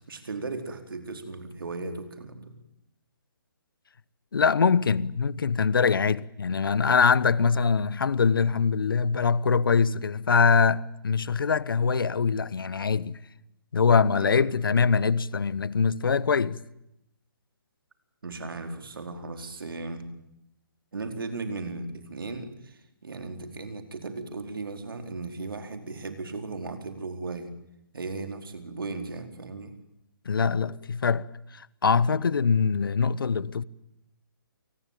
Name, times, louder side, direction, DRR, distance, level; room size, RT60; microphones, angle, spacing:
voice 1, 0.1-2.5 14.2-14.5 18.2-20.0 20.9-27.5 27.9-29.7 30.6-30.7, right 3 dB, 75° right, 4.6 m, -36 dB
voice 2, 4.3-13.2 13.7-16.6 30.2-31.3 31.5-33.6, left 5 dB, 75° left, 1.1 m, -23 dB
28.5 x 20.0 x 9.2 m
hypercardioid pair, 150°, 12 cm